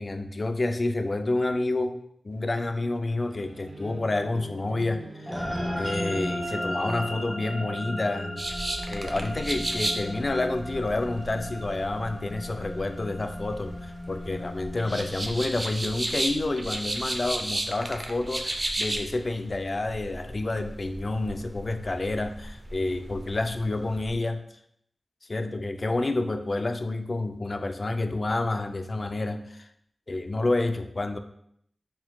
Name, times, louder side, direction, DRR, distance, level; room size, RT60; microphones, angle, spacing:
voice 1, 0.0-5.4 5.7-8.4 8.9-24.4 25.3-29.7 30.1-31.2, left 2 dB, 45° left, 8 dB, 0.3 m, -29 dB
sound 1, 2.3-7.5, right 1 dB, 70° right, 0.7 m, -46 dB
sound 2, 5.3-15.9, equal, ahead, 1.0 m, -35 dB
sound 3, 8.4-24.2, right 1 dB, 30° right, 0.5 m, -35 dB
4.4 x 3.8 x 2.3 m, 0.71 s
cardioid pair, 55°, 0 cm